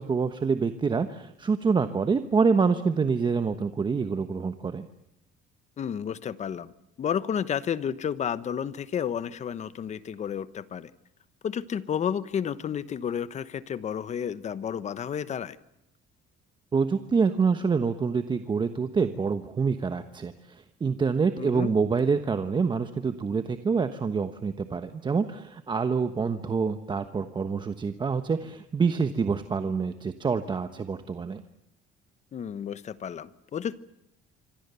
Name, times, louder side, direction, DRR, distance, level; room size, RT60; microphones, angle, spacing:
voice 1, 0.0-4.9 16.7-31.4, right 5 dB, 25° right, 10 dB, 1.2 m, -26 dB
voice 2, 5.8-6.7 7.0-10.9 11.4-15.6 21.4-21.7 32.3-33.8, left 8 dB, 35° left, 15 dB, 1.2 m, -31 dB
26.5 x 24.0 x 7.0 m, 0.82 s
cardioid pair, 145°, 19 cm